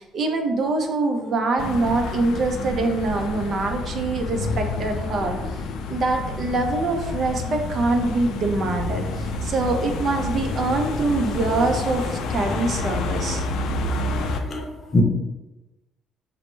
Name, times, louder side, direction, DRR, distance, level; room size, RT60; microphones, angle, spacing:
voice 1, 0.0-5.6 5.9-13.4, right 3 dB, 50° right, 0.5 m, -24 dB
sound 1, 1.6-14.4, left 3 dB, 70° left, 0.3 m, -29 dB
voice 2, 13.9-15.0, left 1 dB, 35° left, 0.7 m, -25 dB
4.2 x 2.0 x 3.1 m
cardioid pair, 105°, 0 cm